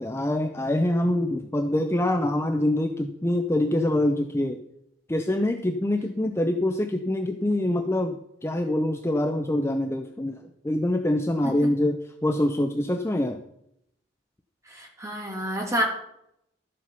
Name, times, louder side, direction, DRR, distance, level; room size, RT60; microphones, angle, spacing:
voice 1, 0.0-4.6 5.1-13.4, left 1 dB, 15° left, 5 dB, 0.6 m, -25 dB
voice 2, 14.7-15.8, equal, 15° right, 0 dB, 2.5 m, -29 dB
12.5 x 7.6 x 5.6 m, 0.77 s
head